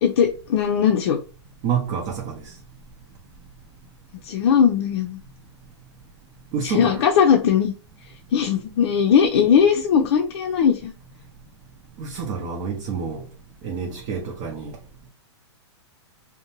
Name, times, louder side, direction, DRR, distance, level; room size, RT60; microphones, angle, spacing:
voice 1, 0.0-1.2 4.2-5.2 6.6-7.7 8.3-10.9, left 7 dB, 60° left, 0.5 m, -19 dB
voice 2, 1.6-2.5 6.5-7.0 12.0-13.2 13.6-14.7, right 6 dB, 40° right, 0.6 m, -28 dB
2.6 x 2.1 x 2.9 m
hypercardioid pair, 130°, 15 cm